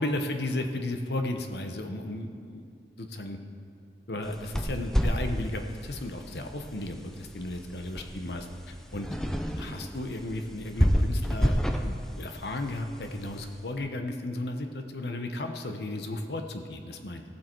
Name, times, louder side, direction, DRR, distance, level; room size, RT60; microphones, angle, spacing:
voice 1, 0.0-2.6 3.0-3.4 4.1-9.1 9.6-17.2, left 1 dB, 70° left, 5 dB, 1.0 m, -34 dB
sound 1, 4.2-13.6, equal, 5° left, 0.5 m, -30 dB
17.0 x 7.6 x 4.6 m, 2.3 s
head